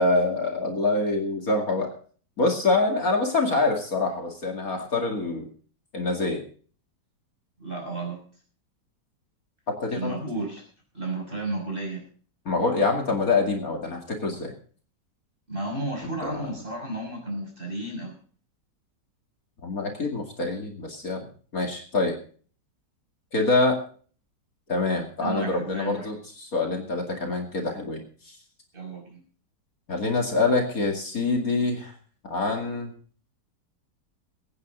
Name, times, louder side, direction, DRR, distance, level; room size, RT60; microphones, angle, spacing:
voice 1, 0.0-1.9 2.4-5.5 5.9-6.4 9.7-10.2 12.5-14.5 16.2-16.4 19.6-21.3 21.5-22.2 23.3-23.8 24.7-28.4 29.9-31.9 32.2-32.9, left 3 dB, 50° left, 2 dB, 2.7 m, -25 dB
voice 2, 7.6-8.2 9.9-10.6 10.9-12.0 15.5-18.2 25.2-26.1 28.7-29.2, right 2 dB, 30° right, 0 dB, 5.9 m, -32 dB
23.0 x 9.3 x 3.8 m, 0.42 s
omnidirectional pair, 1.9 m